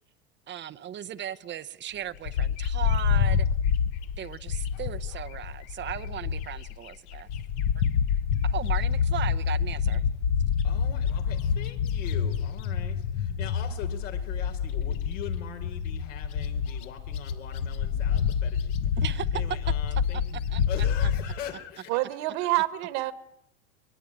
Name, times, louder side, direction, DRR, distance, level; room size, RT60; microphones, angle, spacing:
voice 1, 0.5-3.5 4.2-7.3 7.7-7.8 8.4-10.1 19.0-19.3 20.5-21.1, right 11 dB, 30° right, 0.8 m, -37 dB
Bird, 2.3-6.7 7.1-21.3, left 7 dB, 60° left, 1.4 m, -27 dB
voice 2, 10.6-19.1 19.3-20.2 20.5-22.0, left 9 dB, 80° left, 4.7 m, -42 dB
voice 3, 21.9-23.1, right 18 dB, 60° right, 1.7 m, -27 dB
22.5 x 21.0 x 8.7 m
supercardioid pair, 110°, 37 cm